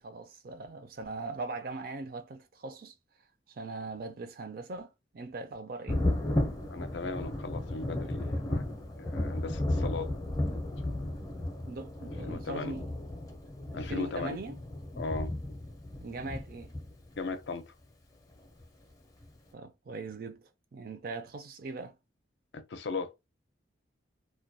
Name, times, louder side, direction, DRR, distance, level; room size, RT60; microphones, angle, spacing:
voice 1, 0.0-2.9 3.5-6.0 11.6-12.9 13.7-14.6 16.0-16.8 19.5-21.9, right 3 dB, 50° right, 0.4 m, -40 dB
Thunder, 5.9-17.3 18.6-18.7 19.2-19.3, left 1 dB, 20° left, 0.5 m, -34 dB
voice 2, 6.7-8.6 9.0-10.1 10.8-11.0 12.2-12.7 13.7-14.4 15.0-15.3 17.2-17.7 22.5-23.1, left 3 dB, 70° left, 0.5 m, -37 dB
2.2 x 2.2 x 2.6 m
head